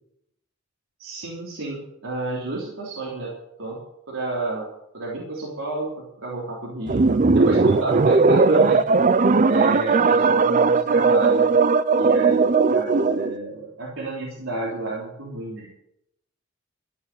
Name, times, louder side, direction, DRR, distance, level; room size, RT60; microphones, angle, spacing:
voice 1, 1.0-3.3 3.6-3.8 4.1-4.7 4.9-11.5 12.0-15.7, right 2 dB, 85° right, -5 dB, 3.6 m, -30 dB
sound 1, 6.9-13.3, right 4 dB, 40° right, 0.5 m, -18 dB
14.0 x 9.2 x 7.7 m, 0.78 s
head